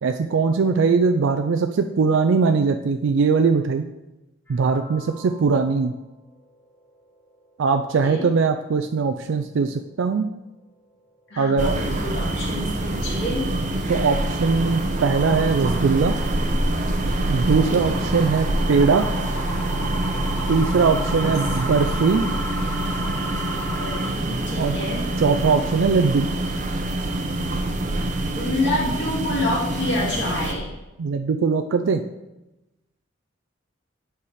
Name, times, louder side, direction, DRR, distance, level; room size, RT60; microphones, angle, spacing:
voice 1, 0.0-3.9 4.5-5.9 7.6-10.3 11.4-11.8 13.9-16.2 17.3-19.1 20.5-22.3 24.6-24.8 25.2-26.3 31.0-32.0, right 5 dB, 75° right, 5 dB, 0.4 m, -20 dB
sound 1, 4.5-6.0 6.4-6.5 6.9-7.0 7.4-7.5 12.3-24.1, equal, 10° left, 0.9 m, -36 dB
voice 2, 11.3-13.5 17.7-18.1 21.1-21.4 23.0-25.0 28.3-30.7, left 1 dB, 65° left, -5 dB, 2.6 m, -28 dB
sound 2, 11.6-30.5, right 1 dB, 40° right, 0.8 m, -25 dB
8.5 x 4.7 x 4.9 m, 1.0 s
head